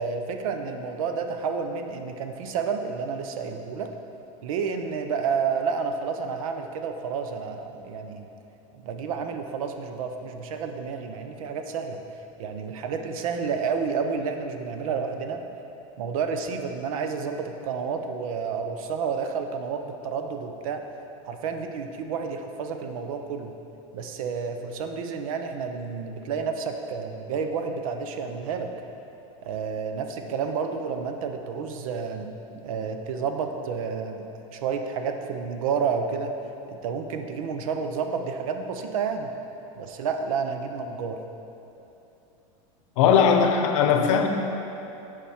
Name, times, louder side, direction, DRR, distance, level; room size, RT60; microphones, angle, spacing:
voice 1, 0.0-3.9 4.4-8.3 8.8-12.0 12.4-15.4 16.0-20.8 21.3-23.5 23.9-28.7 29.4-32.4 32.6-34.3 34.5-36.3 36.7-39.3 39.8-41.2, right 5 dB, 75° right, 6 dB, 0.7 m, -30 dB
voice 2, 43.0-44.3, left 7 dB, 65° left, 5 dB, 0.8 m, -19 dB
8.9 x 5.0 x 4.3 m, 2.9 s
supercardioid pair, 150°, 18 cm